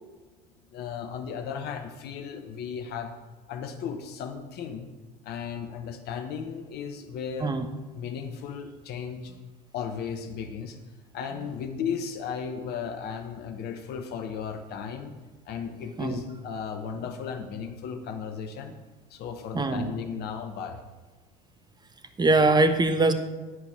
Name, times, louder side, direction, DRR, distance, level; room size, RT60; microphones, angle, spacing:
voice 1, 0.7-3.1 3.5-4.9 5.2-7.5 7.9-9.3 9.7-10.8 11.1-15.2 15.4-18.7 19.1-20.8, left 7 dB, 50° left, 6 dB, 1.1 m, -35 dB
voice 2, 22.2-23.1, right 2 dB, 20° right, 7 dB, 1.3 m, -22 dB
11.5 x 5.2 x 7.9 m, 1.3 s
hypercardioid pair, 65°, 21 cm